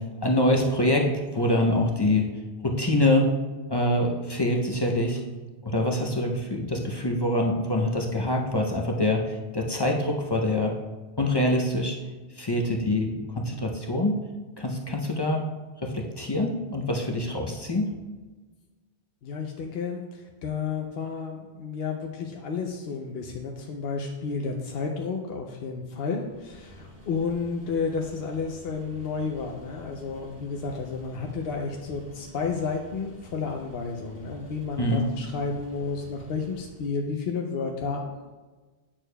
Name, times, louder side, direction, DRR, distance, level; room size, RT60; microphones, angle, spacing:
voice 1, 0.2-2.3 2.6-3.3 3.7-5.2 5.6-10.7 11.2-12.0 12.4-14.1 14.6-15.4 15.8-17.9 34.8-35.1, left 1 dB, 30° left, 0 dB, 0.5 m, -25 dB
voice 2, 19.2-38.1, left 5 dB, 70° left, 1 dB, 0.8 m, -31 dB
sound 1, 26.2-37.0, equal, 25° right, 1.2 m, -48 dB
8.8 x 6.4 x 2.2 m, 1.3 s
omnidirectional pair, 1.1 m